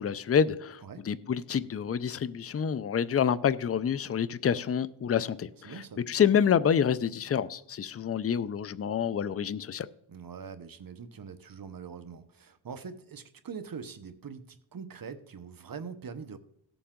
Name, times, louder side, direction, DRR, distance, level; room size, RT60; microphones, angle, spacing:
voice 1, 0.0-0.8 1.1-9.9, left 8 dB, 30° left, 16 dB, 0.5 m, -27 dB
voice 2, 5.6-6.0 10.1-16.4, right 6 dB, 45° right, 10 dB, 1.0 m, -43 dB
16.5 x 7.0 x 3.8 m, 0.72 s
wide cardioid pair, 95°, 47 cm